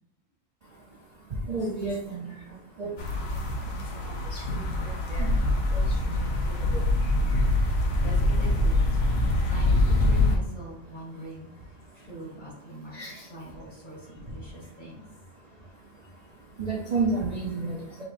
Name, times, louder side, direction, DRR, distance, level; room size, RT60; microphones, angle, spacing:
voice 1, 1.5-2.3 2.8-2.9 4.3-4.6 5.1-5.2 6.1-6.2 6.5-6.6 12.9-13.1 16.6-18.0, right 3 dB, 55° right, -3 dB, 0.4 m, -30 dB
sound 1, 3.0-10.4, left 2 dB, 55° left, 0.9 m, -24 dB
voice 2, 8.0-15.0 16.6-16.7, right 2 dB, 35° left, -5 dB, 2.0 m, -43 dB
6.5 x 3.0 x 2.4 m, 0.82 s
omnidirectional pair, 1.5 m